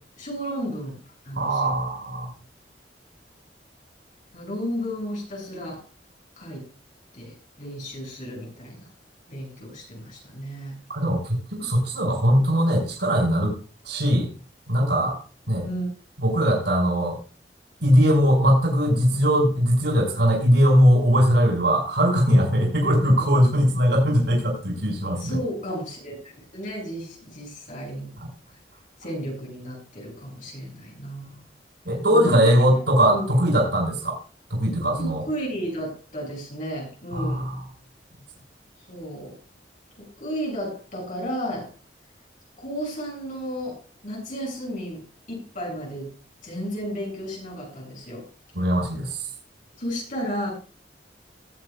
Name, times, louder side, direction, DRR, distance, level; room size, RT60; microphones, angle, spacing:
voice 1, 0.2-1.0 1.2-1.7 4.3-5.8 6.4-6.6 7.1-8.8 9.3-10.8 15.6-15.9 22.3-23.2 25.2-28.2 29.0-31.5 32.1-32.5 33.1-33.2 35.0-37.5 38.9-39.3 40.0-41.7 42.6-45.0 45.3-46.1 46.4-48.2 49.8-50.5, equal, 50° left, -2 dB, 6.9 m, -33 dB
voice 2, 1.3-2.3 10.9-13.5 13.8-14.3 14.7-15.2 15.5-15.7 16.2-17.2 17.8-25.4 28.2-28.3 31.8-34.2 34.5-35.2 37.1-37.6 48.5-49.3, equal, 90° right, -3 dB, 5.0 m, -20 dB
19.5 x 8.2 x 2.4 m, 0.36 s
head